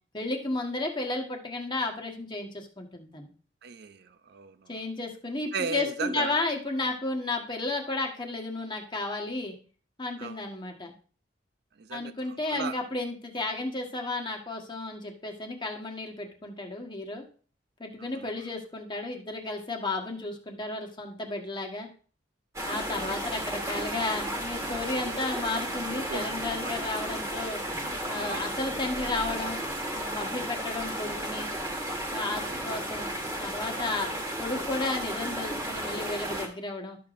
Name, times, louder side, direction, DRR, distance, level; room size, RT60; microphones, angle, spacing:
voice 1, 0.1-3.3 4.7-9.5 10.0-10.9 11.9-17.2 17.8-21.9 22.6-27.6 28.1-29.6 30.0-31.5 32.1-33.1 33.4-34.1 34.4-37.0, left 2 dB, 25° left, 1.3 m, -33 dB
voice 2, 3.6-4.7 5.5-6.4 10.2-10.4 11.8-12.1 12.4-12.7 18.0-18.3 22.9-23.2 25.9-26.3 26.6-26.7 28.2-28.4 32.4-32.6, right 5 dB, 60° right, 0.5 m, -36 dB
sound 1, 22.5-36.5, right 1 dB, 15° right, 1.5 m, -34 dB
12.0 x 6.7 x 2.5 m
head